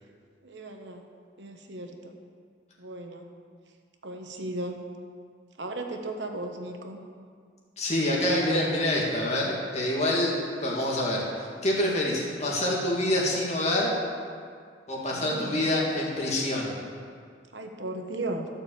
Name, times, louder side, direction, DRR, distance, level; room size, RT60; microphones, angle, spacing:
voice 1, 0.4-1.1 1.4-2.1 2.8-3.3 4.0-4.8 5.6-7.0 15.1-15.7 17.5-18.5, right 2 dB, 80° right, 4 dB, 1.2 m, -36 dB
voice 2, 7.8-13.9 14.9-16.8, left 1 dB, 40° left, -4 dB, 2.6 m, -26 dB
13.0 x 6.4 x 7.3 m, 2.1 s
head